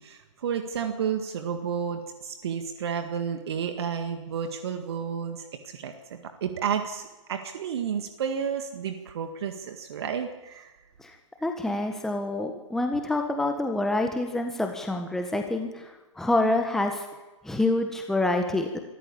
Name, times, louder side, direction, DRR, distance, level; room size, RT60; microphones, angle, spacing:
voice 1, 0.0-10.8, right 7 dB, 50° right, 6 dB, 1.9 m, -31 dB
voice 2, 11.4-17.1 17.4-18.8, left 2 dB, ahead, 4 dB, 1.5 m, -27 dB
24.5 x 14.5 x 8.6 m, 1.1 s
figure-of-eight pair, 120°, 17 cm